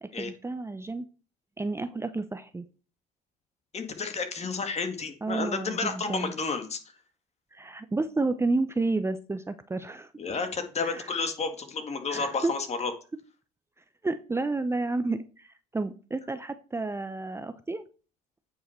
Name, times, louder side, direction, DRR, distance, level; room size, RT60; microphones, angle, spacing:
voice 1, 0.0-1.1 1.6-2.6 5.2-6.3 7.5-10.1 10.8-11.1 12.1-12.5 14.0-17.8, right 3 dB, 15° right, 10 dB, 0.7 m, -31 dB
voice 2, 3.7-6.8 10.2-12.9, left 4 dB, 35° left, 7 dB, 2.0 m, -31 dB
8.9 x 5.5 x 4.5 m, 0.36 s
hypercardioid pair, 70°, 19 cm